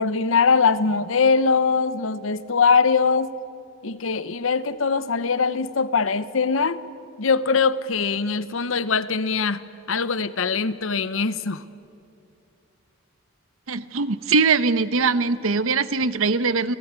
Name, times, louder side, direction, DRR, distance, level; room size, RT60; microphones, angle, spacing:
voice 1, 0.0-3.3 3.8-6.8 7.2-9.6 9.9-11.6, left 5 dB, 75° left, 15 dB, 0.9 m, -22 dB
voice 2, 13.7-16.7, right 4 dB, 90° right, 15 dB, 0.9 m, -21 dB
29.5 x 17.0 x 9.6 m, 2.6 s
head